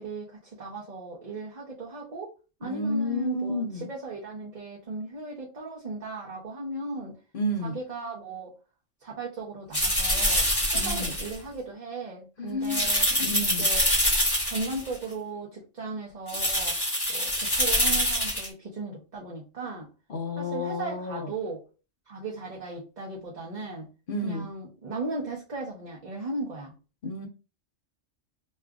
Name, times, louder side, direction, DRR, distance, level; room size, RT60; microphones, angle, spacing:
voice 1, 0.0-2.3 2.6-7.1 7.6-8.5 9.0-10.5 10.7-13.1 13.5-13.9 14.5-16.8 17.1-19.9 20.4-21.6 22.1-23.9 24.2-26.7, right 3 dB, 40° right, -4 dB, 0.8 m, -37 dB
voice 2, 2.6-3.9 7.3-7.8 10.7-11.1 12.4-12.9 13.2-13.7 20.1-21.3 24.1-24.5 27.0-27.3, left 1 dB, 50° left, 3 dB, 0.8 m, -31 dB
sound 1, 9.7-11.3 12.6-15.0 16.3-18.5, equal, 20° left, 1.2 m, -25 dB
5.3 x 2.4 x 2.3 m, 0.32 s
omnidirectional pair, 1.3 m